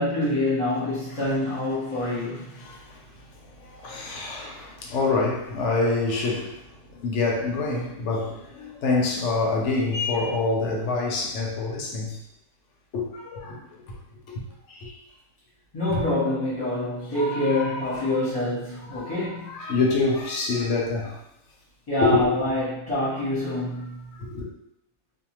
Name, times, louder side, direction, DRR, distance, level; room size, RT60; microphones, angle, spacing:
voice 1, 0.0-2.6 15.7-19.5 21.9-24.2, left 1 dB, 25° left, 0.7 m, -26 dB
voice 2, 2.6-3.0 3.4-12.2 12.9-13.8 14.3-14.4 14.7-15.0 15.9-16.1 17.1-18.2 18.9-21.2 22.0-22.4 24.2-24.5, left 3 dB, 65° left, 0.8 m, -27 dB
2.6 x 2.2 x 2.9 m
omnidirectional pair, 1.6 m